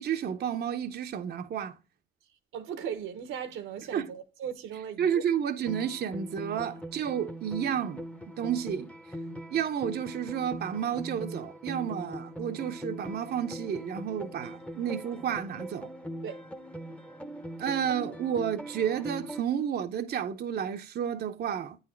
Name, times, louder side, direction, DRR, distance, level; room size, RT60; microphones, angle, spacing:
voice 1, 0.0-1.8 3.9-4.1 5.0-8.0 8.4-9.2 9.5-15.9 17.6-21.8, right 8 dB, 55° right, 0.6 m, -31 dB
voice 2, 2.5-5.2 16.2-16.4, right 8 dB, 85° right, 1.0 m, -37 dB
sound 1, 5.7-19.4, equal, 5° left, 0.7 m, -41 dB
8.7 x 4.0 x 4.3 m
cardioid pair, 90°, 20 cm